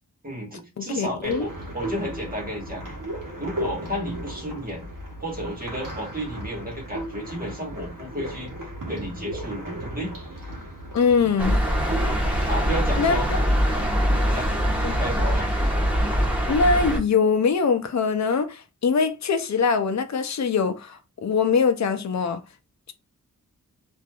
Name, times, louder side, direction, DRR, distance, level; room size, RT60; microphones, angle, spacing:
voice 1, 0.2-2.8 3.4-4.9 5.2-8.5 8.9-10.1 12.5-13.3 14.1-14.5 15.0-15.7, equal, 25° right, 1.3 m, -32 dB
voice 2, 0.8-1.5 10.9-11.6 13.0-13.2 14.8-14.9 16.5-22.4, left 5 dB, 55° left, 0.5 m, -22 dB
sound 1, 1.2-13.5, right 1 dB, 65° right, 0.9 m, -36 dB
sound 2, 11.4-17.0, equal, 5° right, 1.0 m, -23 dB
3.2 x 2.5 x 2.2 m
wide cardioid pair, 75°, 35 cm